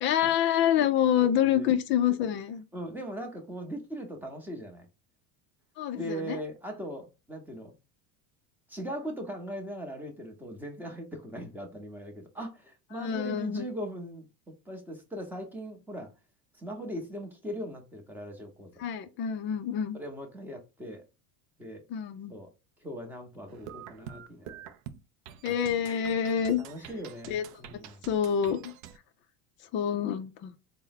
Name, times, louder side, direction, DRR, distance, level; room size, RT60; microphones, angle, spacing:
voice 1, 0.0-2.6 5.8-6.4 12.9-13.7 18.8-20.0 21.9-22.3 25.4-26.6 27.3-27.4 28.1-28.7 29.7-30.5, left 9 dB, 30° left, 0.4 m, -27 dB
voice 2, 1.2-1.7 2.7-4.9 5.9-7.7 8.7-14.3 14.7-16.1 16.5-18.7 19.9-21.0 21.6-21.8 22.3-22.5 22.8-24.7 26.6-28.0, equal, 5° right, 0.7 m, -39 dB
sound 1, 23.5-29.0, right 10 dB, 45° right, 0.4 m, -46 dB
3.9 x 2.1 x 4.0 m
supercardioid pair, 150°, 41 cm